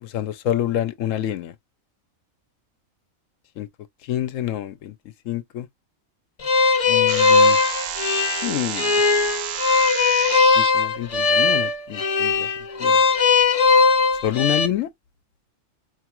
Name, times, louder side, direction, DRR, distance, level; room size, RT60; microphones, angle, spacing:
voice 1, 0.0-1.5 3.6-3.7 4.0-4.9 5.3-5.7 6.9-7.6 8.4-8.9 10.6-12.5 12.8-13.0 14.2-14.9, left 12 dB, 70° left, 0.9 m, -27 dB
sound 1, 6.4-14.7, left 4 dB, 55° left, 0.4 m, -19 dB
sound 2, 7.1-10.7, right 10 dB, 70° right, 0.8 m, -30 dB
4.6 x 2.3 x 2.9 m
omnidirectional pair, 1.4 m